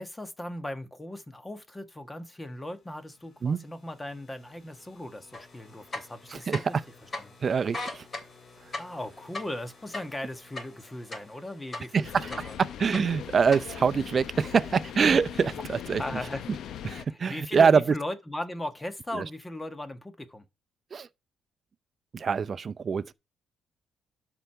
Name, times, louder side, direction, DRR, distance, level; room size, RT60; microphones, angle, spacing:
voice 1, 0.0-6.8 7.2-7.3 8.7-12.6 16.0-16.4 17.1-20.5, left 1 dB, 15° left, 1.6 m, -38 dB
sound 1, 2.3-14.1, left 4 dB, 50° left, 3.2 m, -58 dB
sound 2, 5.3-5.4 5.8-6.8 7.1-7.2 7.6-11.4 11.7-12.6 12.9-13.6, left 2 dB, 30° left, 2.9 m, -37 dB
voice 2, 6.3-6.8 7.4-8.0 11.9-16.0 16.8-17.8 19.1-19.2 20.9-21.1 22.1-23.1, right 6 dB, 45° right, 0.6 m, -25 dB
sound 3, 12.0-17.1, left 9 dB, 75° left, 0.8 m, -40 dB
12.5 x 4.8 x 5.7 m
cardioid pair, 90°, 0 cm